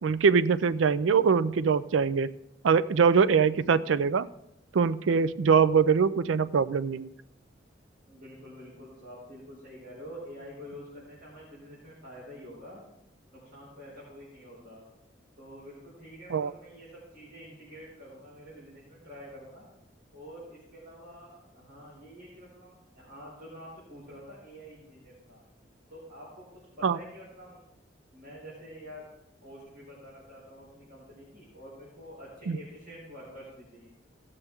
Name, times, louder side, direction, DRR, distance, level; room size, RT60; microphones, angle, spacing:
voice 1, 0.0-2.3 2.6-4.3 4.7-7.1 16.3-16.5 26.8-27.0 32.5-32.6, right 6 dB, 85° right, 15 dB, 0.4 m, -23 dB
voice 2, 8.1-12.8 13.3-14.9 15.4-19.7 20.1-25.4 25.9-26.5 26.8-27.6 28.1-29.1 29.4-33.9, equal, 50° right, -8 dB, 4.3 m, -47 dB
16.5 x 6.8 x 3.6 m, 0.85 s
head